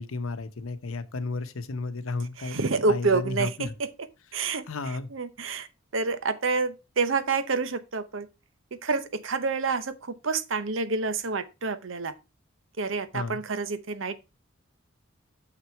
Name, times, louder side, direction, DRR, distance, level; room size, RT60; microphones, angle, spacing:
voice 1, 0.0-3.7 4.7-5.1 13.1-13.4, left 3 dB, 85° left, 0.9 m, -33 dB
voice 2, 2.4-3.9 4.3-4.6 5.1-5.7 5.9-8.3 8.8-12.1 12.8-14.2, right 4 dB, 65° right, 0.8 m, -28 dB
6.7 x 6.0 x 4.5 m
head